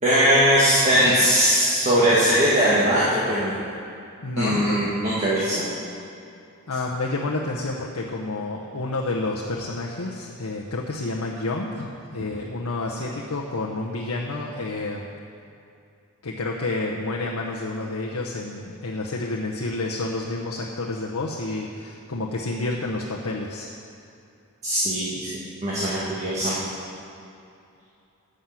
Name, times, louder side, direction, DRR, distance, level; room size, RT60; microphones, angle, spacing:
voice 1, 0.0-3.5 4.4-5.7 24.6-26.6, equal, 30° right, -8 dB, 1.6 m, -20 dB
voice 2, 4.2-4.8 6.7-15.1 16.2-23.7, left 2 dB, 80° left, -2 dB, 0.9 m, -29 dB
11.5 x 6.5 x 7.5 m, 2.7 s
head